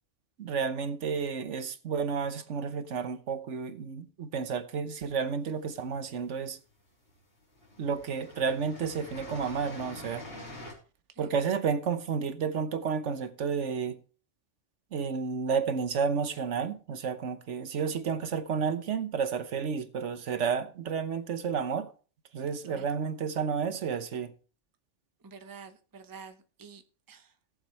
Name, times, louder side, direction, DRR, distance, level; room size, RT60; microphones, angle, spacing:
voice 1, 0.4-6.6 7.8-10.2 11.2-14.0 14.9-21.9 22.3-24.3, right 6 dB, 75° right, 1.3 m, -31 dB
sound 1, 5.4-6.2 7.1-7.2 7.5-10.7, left 1 dB, 55° left, 3.8 m, -45 dB
voice 2, 25.2-26.8 27.1-27.3, right 5 dB, 20° right, 0.8 m, -48 dB
18.0 x 7.2 x 3.2 m
omnidirectional pair, 1.2 m